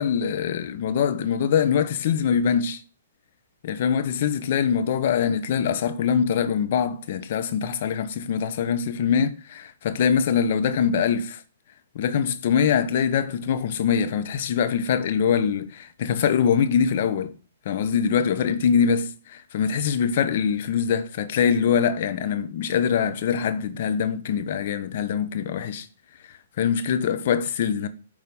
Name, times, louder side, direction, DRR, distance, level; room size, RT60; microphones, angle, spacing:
voice 1, 0.0-2.8 3.6-11.4 11.9-17.3 17.6-25.9 26.6-27.9, left 7 dB, 55° left, 0.9 m, -23 dB
9.7 x 3.7 x 5.4 m
hypercardioid pair, 135°, 0 cm